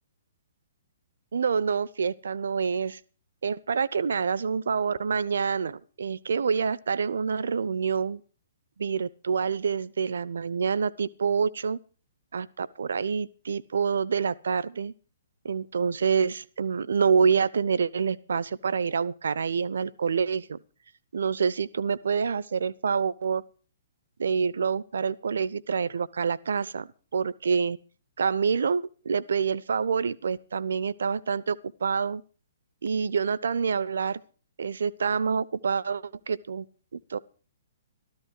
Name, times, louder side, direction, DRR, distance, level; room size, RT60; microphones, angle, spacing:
voice 1, 1.3-3.0 3.4-8.2 8.8-11.8 12.3-14.9 15.4-20.6 21.1-23.4 24.2-27.8 28.2-32.2 32.8-34.2 34.6-36.7 37.1-37.2, right 6 dB, 65° right, 0.6 m, -27 dB
14.0 x 13.0 x 4.8 m
figure-of-eight pair, 125°, 0 cm